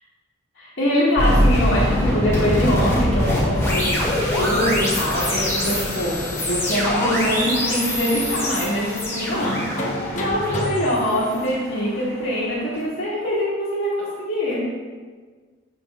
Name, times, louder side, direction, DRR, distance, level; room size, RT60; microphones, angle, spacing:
voice 1, 0.6-4.0 4.4-14.7, equal, 65° left, -10 dB, 1.9 m, -23 dB
sound 1, 1.2-12.2, equal, 15° left, 1.9 m, -23 dB
sound 2, 4.7-4.8 5.4-6.2 6.6-6.7 7.0-10.7, left 1 dB, 35° left, 0.8 m, -32 dB
8.0 x 5.8 x 3.5 m, 1.5 s
head